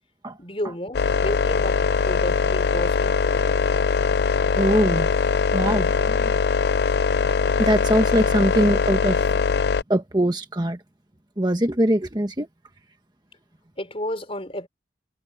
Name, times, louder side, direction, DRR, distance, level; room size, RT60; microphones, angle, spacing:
voice 1, 0.4-3.6 4.6-4.8 13.8-14.7, left 1 dB, 30° left, 5.1 m, -32 dB
sound 1, 0.9-9.8, left 5 dB, 55° left, 0.4 m, -21 dB
voice 2, 4.5-5.2 5.5-6.4 7.4-9.4 9.9-10.8 11.4-12.5, right 1 dB, 20° right, 1.3 m, -22 dB
head